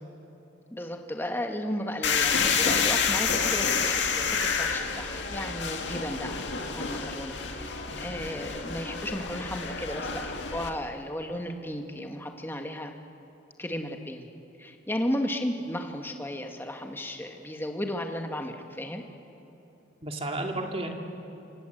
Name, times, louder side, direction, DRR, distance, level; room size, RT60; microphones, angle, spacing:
voice 1, 0.7-6.5 6.7-12.9 13.6-14.3 14.6-19.0, left 1 dB, 10° left, 4 dB, 1.7 m, -34 dB
sound 1, 2.0-10.7, left 5 dB, 70° left, 2.1 m, -28 dB
voice 2, 20.0-20.9, right 2 dB, 30° right, 3 dB, 2.5 m, -33 dB
27.0 x 26.0 x 8.0 m, 3.0 s
head